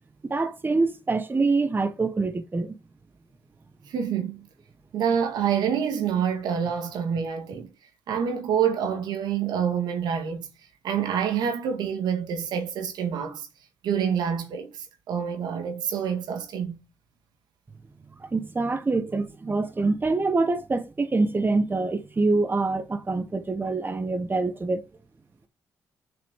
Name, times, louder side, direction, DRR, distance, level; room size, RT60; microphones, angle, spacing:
voice 1, 0.2-2.7 18.2-24.8, right 3 dB, 30° right, 1.3 m, -25 dB
voice 2, 3.9-4.5 4.9-7.7 8.1-10.5 10.8-13.5 13.8-16.8, right 8 dB, 80° right, 1.9 m, -27 dB
7.0 x 5.9 x 3.8 m
supercardioid pair, 60°, 7 cm